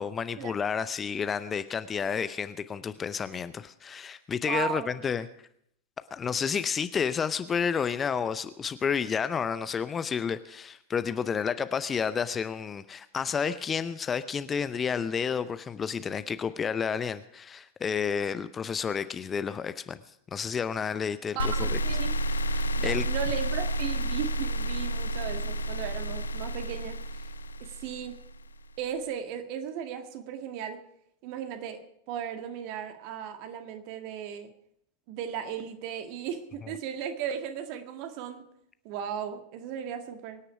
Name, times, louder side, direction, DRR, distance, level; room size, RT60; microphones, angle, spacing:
voice 1, 0.0-5.3 6.1-20.0 20.3-21.8 22.5-23.1, left 6 dB, 20° left, 13 dB, 0.6 m, -30 dB
voice 2, 4.5-4.9 21.3-22.1 22.7-27.0 27.6-28.2 28.8-30.8 31.2-34.5 35.1-38.4 38.8-40.4, right 8 dB, 45° right, 7 dB, 1.9 m, -36 dB
sound 1, 21.4-28.5, right 1 dB, 75° left, 0.6 m, -30 dB
24.0 x 9.9 x 4.9 m, 0.71 s
figure-of-eight pair, 90°, 0 cm